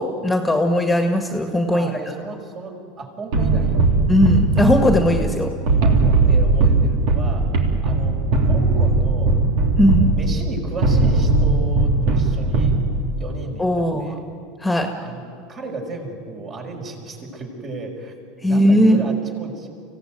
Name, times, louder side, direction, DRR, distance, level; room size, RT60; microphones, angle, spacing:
voice 1, 0.0-1.9 4.1-5.5 9.8-10.1 13.6-14.1 14.6-14.9 18.4-19.0, equal, 5° left, 4 dB, 2.0 m, -18 dB
voice 2, 1.7-3.8 5.8-7.4 7.8-8.2 8.5-9.4 10.1-12.8 13.2-14.2 15.0-15.2 15.5-18.1 18.4-19.7, right 2 dB, 40° right, 1 dB, 5.5 m, -34 dB
sound 1, 3.3-13.3, right 3 dB, 70° right, 3.2 m, -18 dB
25.0 x 16.5 x 9.3 m, 2.3 s
hypercardioid pair, 95°, 0 cm